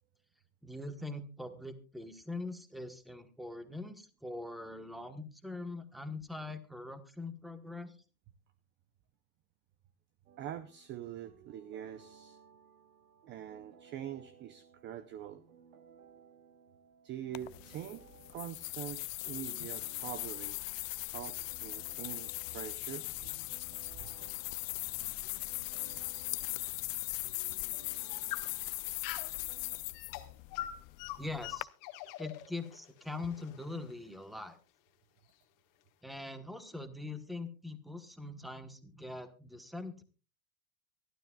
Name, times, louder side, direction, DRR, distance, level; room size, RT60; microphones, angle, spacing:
voice 1, 0.6-8.0 31.2-31.7 32.2-34.6 36.0-40.0, left 2 dB, ahead, 10 dB, 1.2 m, -42 dB
sound 1, 10.3-29.8, right 7 dB, 65° right, 2.2 m, -60 dB
voice 2, 10.4-12.4 13.3-15.4 17.0-20.9 21.1-23.1 23.9-24.3, right 10 dB, 25° right, 14 dB, 0.6 m, -44 dB
sound 2, 17.3-31.6, left 21 dB, 60° left, 0.6 m, -40 dB
sound 3, 24.6-26.7 27.2-27.3 27.9-29.4 29.9-34.2, left 14 dB, 45° left, 1.6 m, -45 dB
24.0 x 12.5 x 2.3 m, 0.33 s
supercardioid pair, 135°, 45 cm